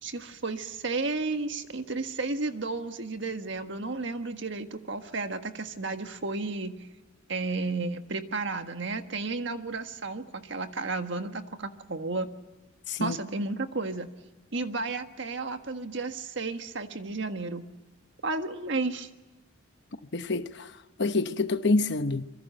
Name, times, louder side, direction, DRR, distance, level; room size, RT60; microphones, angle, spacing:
voice 1, 0.0-6.8 7.3-12.3 13.0-14.1 14.5-17.7 18.2-19.1, right 3 dB, 60° right, 1.6 m, -32 dB
voice 2, 20.1-20.7 21.0-22.2, left 3 dB, 55° left, 1.1 m, -27 dB
26.5 x 23.5 x 7.8 m
head